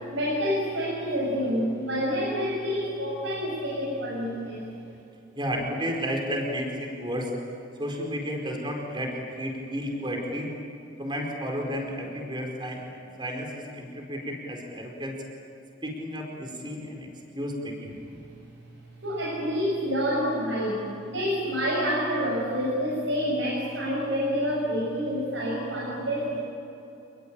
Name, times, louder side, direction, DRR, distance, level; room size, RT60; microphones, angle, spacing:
voice 1, 0.1-4.6 19.0-20.8 21.1-26.4, equal, 70° right, -4 dB, 6.8 m, -28 dB
voice 2, 5.3-7.3 7.8-10.5 11.0-15.2 15.8-18.0, equal, 25° right, 1 dB, 4.7 m, -32 dB
28.0 x 21.0 x 9.0 m, 2.9 s
head